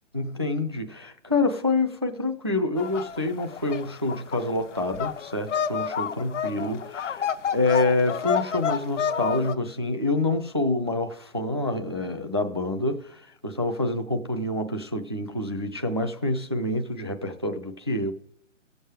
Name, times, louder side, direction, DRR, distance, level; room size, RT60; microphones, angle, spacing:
voice 1, 0.1-18.1, left 2 dB, 25° right, 0.3 m, -27 dB
sound 1, 2.8-9.5, left 7 dB, 70° left, 0.9 m, -29 dB
16.5 x 7.2 x 4.7 m
hypercardioid pair, 150°, 38 cm